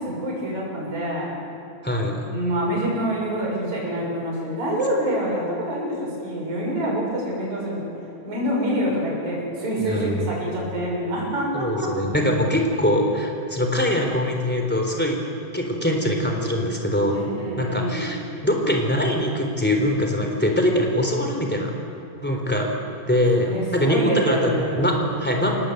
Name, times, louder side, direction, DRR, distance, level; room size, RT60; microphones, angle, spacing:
voice 1, 0.0-1.4 2.3-7.9 8.2-11.9 17.1-18.1 22.2-22.4 23.4-25.0, equal, 50° right, -4 dB, 8.1 m, -26 dB
voice 2, 1.8-2.2 9.9-10.1 11.5-15.2 15.5-18.2 18.4-21.8 22.2-22.7 23.1-25.6, left 1 dB, 5° left, 2 dB, 3.2 m, -23 dB
26.5 x 19.5 x 8.1 m, 2.9 s
omnidirectional pair, 4.3 m